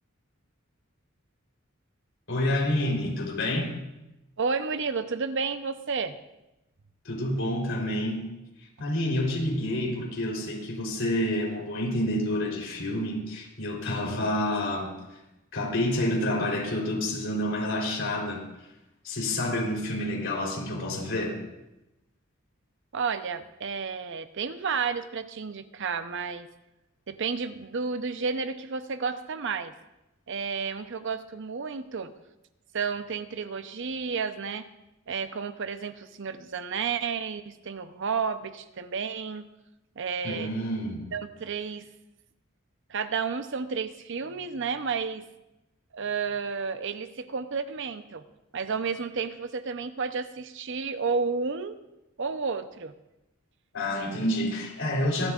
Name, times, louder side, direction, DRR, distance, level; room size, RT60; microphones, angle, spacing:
voice 1, 2.3-3.7 7.1-8.2 8.8-14.9 15.5-18.4 19.0-21.4 40.2-41.0 53.7-55.3, left 1 dB, 65° left, -1 dB, 3.6 m, -28 dB
voice 2, 4.4-6.2 8.8-8.9 22.9-26.5 27.1-29.7 30.3-32.1 32.7-34.7 35.1-39.5 40.0-40.5 41.1-41.9 42.9-45.2 45.9-48.2 48.5-51.8 52.2-52.9, right 5 dB, 65° right, 10 dB, 0.7 m, -31 dB
26.0 x 11.5 x 2.4 m, 0.95 s
head